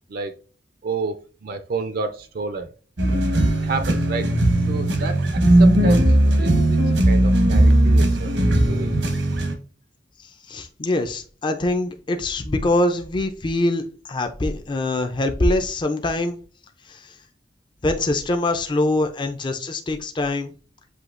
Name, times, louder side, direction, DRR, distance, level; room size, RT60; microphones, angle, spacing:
voice 1, 0.8-2.7 3.3-4.4 4.7-8.3 8.7-8.9, right 4 dB, 55° right, 8 dB, 0.4 m, -30 dB
sound 1, 3.0-9.5, right 1 dB, 90° right, 1.0 m, -18 dB
voice 2, 10.5-16.4 16.9-17.0 17.8-20.5, left 2 dB, 25° left, 6 dB, 0.4 m, -23 dB
7.8 x 2.7 x 2.5 m, 0.39 s
head